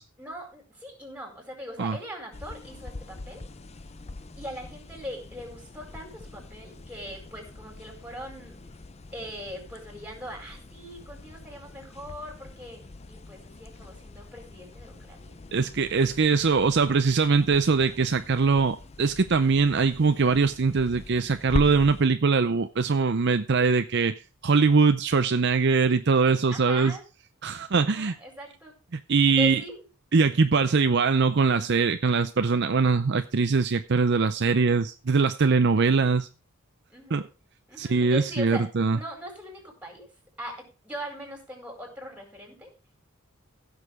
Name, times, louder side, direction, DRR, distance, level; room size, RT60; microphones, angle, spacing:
voice 1, 0.2-3.4 4.4-8.6 9.1-15.3 26.5-27.0 27.8-28.8 29.4-29.8 36.9-37.3 37.7-40.1 40.4-42.7, equal, 5° right, 4.7 m, -40 dB
sound 1, 2.3-22.0, left 2 dB, 30° left, 0.6 m, -42 dB
voice 2, 15.5-24.1 24.4-27.0 27.4-28.1 28.9-29.6 30.1-36.3 37.1-37.2 37.8-39.0, right 4 dB, 50° right, 0.6 m, -22 dB
15.5 x 6.6 x 4.9 m
head